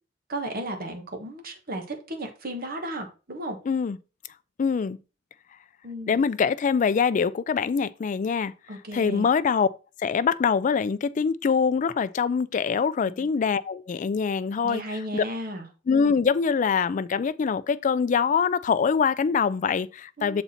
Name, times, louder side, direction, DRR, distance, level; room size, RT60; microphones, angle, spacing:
voice 1, 0.3-3.6 5.8-6.2 8.7-9.3 13.0-13.3 14.6-15.7 20.2-20.4, right 1 dB, 50° right, 1.3 m, -34 dB
voice 2, 3.7-4.0 4.6-5.0 6.1-8.5 8.9-9.7 10.0-14.8 15.1-15.2 15.9-20.4, left 6 dB, 40° left, 0.3 m, -24 dB
6.9 x 4.1 x 4.3 m
head